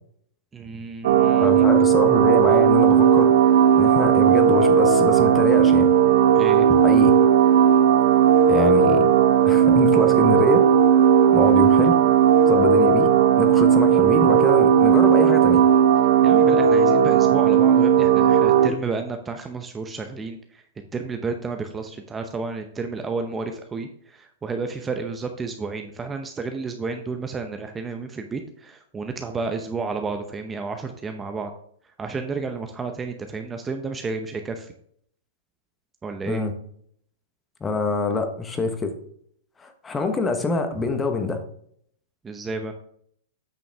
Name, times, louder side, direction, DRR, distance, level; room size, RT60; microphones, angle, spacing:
voice 1, 0.5-1.7 6.3-6.9 16.2-20.6 20.9-31.5 32.0-34.7 36.0-36.4 42.2-42.7, right 4 dB, 15° right, 5 dB, 0.7 m, -31 dB
sound 1, 1.0-18.7, right 8 dB, 70° right, 0.9 m, -16 dB
voice 2, 1.4-5.9 6.8-7.1 8.4-9.1 9.4-10.6 11.3-12.0 12.4-13.1 13.4-15.6 36.3-36.5 37.6-38.9 39.6-41.4, left 3 dB, 15° left, 7 dB, 1.2 m, -25 dB
8.7 x 6.2 x 3.5 m, 0.65 s
hypercardioid pair, 130°, 0 cm